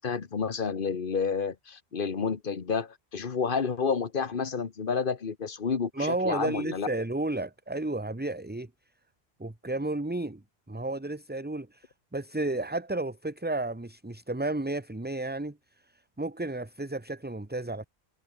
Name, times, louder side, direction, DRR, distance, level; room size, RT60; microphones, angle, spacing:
voice 1, 0.0-6.9, left 5 dB, 55° left, 1.5 m, -30 dB
voice 2, 5.9-8.7 9.4-10.4 10.7-15.6 16.2-17.8, right 2 dB, 10° right, 0.9 m, -32 dB
omnidirectional pair, 1.1 m